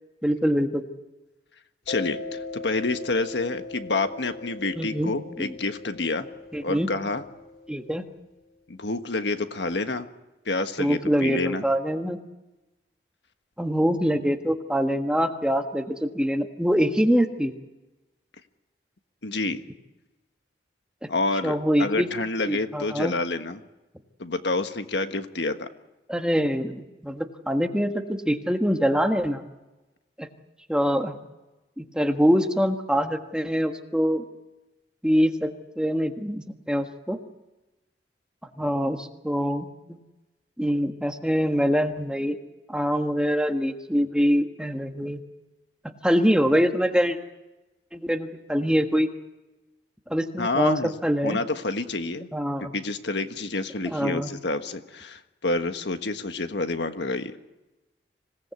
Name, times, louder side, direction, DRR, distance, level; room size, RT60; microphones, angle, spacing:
voice 1, 0.2-0.8 4.8-5.5 6.5-6.9 7.7-8.1 10.8-12.2 13.6-17.5 21.0-21.1 21.4-23.1 26.1-29.4 30.2-30.3 30.7-31.1 31.8-34.2 35.0-35.5 35.8-37.2 38.6-40.0 40.6-42.4 42.7-45.2 46.0-47.2 47.9-49.1 50.1-51.4 52.3-52.7 53.8-54.3, equal, 5° right, 5 dB, 1.4 m, -24 dB
voice 2, 1.9-6.3 6.6-7.2 8.7-10.1 10.4-11.6 19.2-19.6 21.1-23.6 24.2-25.7 50.4-50.9 51.2-52.3 52.6-57.3, left 3 dB, 75° left, 8 dB, 1.5 m, -28 dB
Mallet percussion, 1.9-8.2, left 3 dB, 50° left, 3.1 m, -39 dB
26.5 x 18.0 x 8.3 m, 1.1 s
head